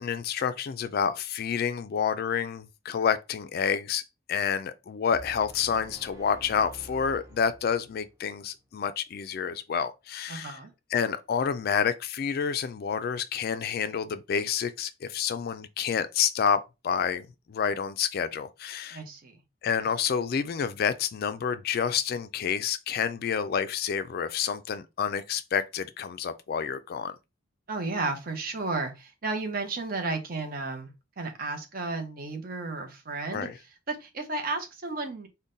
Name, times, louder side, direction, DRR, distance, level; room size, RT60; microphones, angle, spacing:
voice 1, 0.0-4.0 4.3-10.6 10.9-19.0 19.6-27.2 33.3-33.6, left 7 dB, 50° left, 0.3 m, -29 dB
sound 1, 5.1-8.2, equal, 15° right, 0.5 m, -48 dB
voice 2, 10.3-10.7 18.9-19.3 27.7-33.5 33.9-35.3, right 3 dB, 50° right, 0.7 m, -33 dB
3.8 x 2.1 x 3.8 m
head